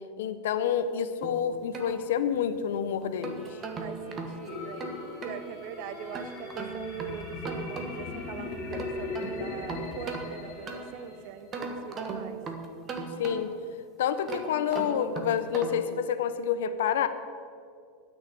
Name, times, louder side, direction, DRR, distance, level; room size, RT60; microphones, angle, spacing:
voice 1, 0.2-3.6 13.2-13.5 14.0-17.1, left 8 dB, 90° left, 11 dB, 0.8 m, -28 dB
sound 1, 1.2-2.6 3.0-5.4 6.1-8.2 8.5-11.1 11.5-13.7 14.2-15.9, right 4 dB, 25° right, 1.3 m, -38 dB
sound 2, 3.2-11.6, left 1 dB, 5° left, 3.7 m, -49 dB
voice 2, 3.8-5.0 5.2-12.4, right 8 dB, 50° right, 12 dB, 0.8 m, -42 dB
sound 3, 4.5-11.5, left 4 dB, 40° left, 2.7 m, -39 dB
12.0 x 6.6 x 9.5 m, 2.3 s
supercardioid pair, 160°, 0 cm